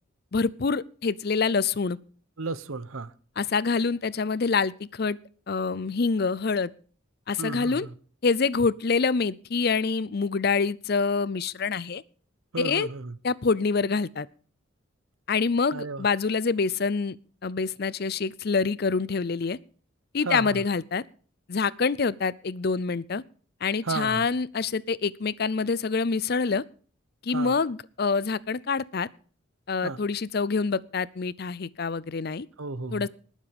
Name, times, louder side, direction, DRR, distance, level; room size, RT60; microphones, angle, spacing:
voice 1, 0.3-2.0 3.4-5.2 5.5-6.7 7.3-7.9 8.2-12.0 12.6-12.9 13.2-14.3 15.3-17.2 17.4-19.6 20.1-21.0 21.5-23.2 23.6-26.6 27.2-29.1 29.7-32.5 32.9-33.1, left 4 dB, 50° left, 0.5 m, -26 dB
voice 2, 2.4-3.1 7.4-7.9 12.5-13.2 15.7-16.1 20.2-20.6 23.8-24.3 27.3-27.6 29.8-30.0 32.6-33.1, right 3 dB, 85° right, 0.9 m, -33 dB
20.0 x 7.4 x 5.2 m
head